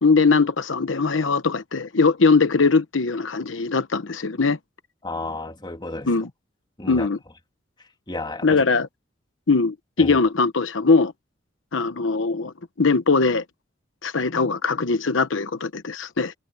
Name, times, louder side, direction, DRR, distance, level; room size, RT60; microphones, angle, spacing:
voice 1, 0.0-4.6 6.1-6.3 6.9-7.2 8.4-8.9 9.5-11.1 11.7-13.4 14.0-16.3, left 4 dB, 90° left, 1.0 m, -21 dB
voice 2, 5.0-6.1 6.8-7.1 8.1-8.6 10.0-10.2, left 2 dB, 25° left, 3.0 m, -32 dB
head